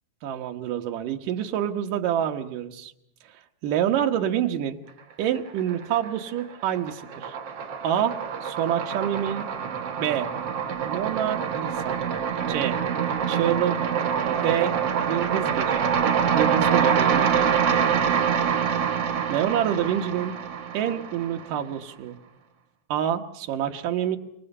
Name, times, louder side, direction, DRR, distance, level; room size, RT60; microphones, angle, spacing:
voice 1, 0.2-2.9 3.6-4.8 5.2-7.3 7.8-9.5 10.0-10.3 10.8-12.0 12.5-12.8 13.3-13.8 14.4-14.8 15.1-15.9 16.3-17.5 19.3-20.4 20.7-22.2 22.9-24.2, right 10 dB, 80° right, 4 dB, 2.9 m, -27 dB
sound 1, 5.4-6.1 6.4-21.6, right 7 dB, 50° right, 2.4 m, -25 dB
27.0 x 24.0 x 5.5 m, 0.76 s
omnidirectional pair, 3.7 m